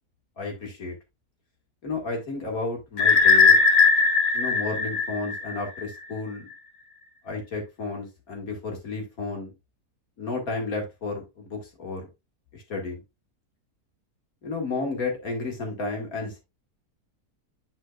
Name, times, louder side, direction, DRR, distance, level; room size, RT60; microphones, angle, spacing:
voice 1, 0.4-1.0 1.8-3.6 4.3-6.5 7.2-9.5 10.2-12.1 12.5-13.0 14.4-16.4, left 3 dB, 65° left, 1 dB, 2.6 m, -32 dB
sound 1, 3.0-5.8, left 4 dB, 85° left, 1.8 m, -19 dB
9.7 x 4.7 x 2.4 m, 0.23 s
omnidirectional pair, 1.7 m